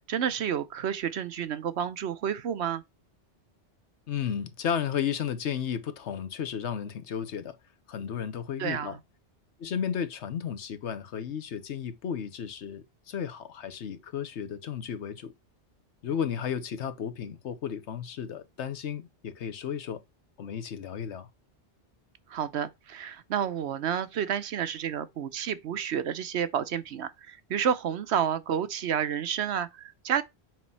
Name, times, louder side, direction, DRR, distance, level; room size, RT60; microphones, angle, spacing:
voice 1, 0.1-2.8 8.6-9.0 22.3-30.2, right 8 dB, 70° right, 1.0 m, -30 dB
voice 2, 4.1-7.6 7.9-9.0 9.6-15.3 16.0-20.0 20.4-21.3, left 8 dB, 75° left, 1.2 m, -33 dB
7.7 x 3.0 x 5.5 m
omnidirectional pair, 1.2 m